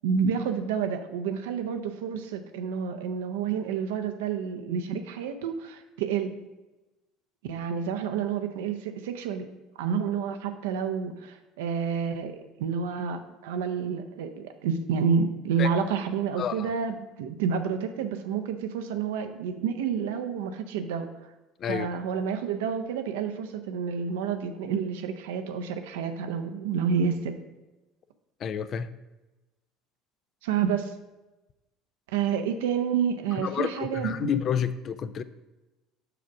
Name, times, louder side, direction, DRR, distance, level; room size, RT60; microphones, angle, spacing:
voice 1, 0.0-6.4 7.4-9.5 9.8-21.1 21.7-27.3 30.4-30.9 32.1-34.3, right 6 dB, 85° right, 0.5 m, -29 dB
voice 2, 16.4-16.7 21.6-21.9 28.4-28.9 33.4-35.2, left 8 dB, 50° left, 0.4 m, -29 dB
5.9 x 5.0 x 4.6 m
supercardioid pair, 85°, 0 cm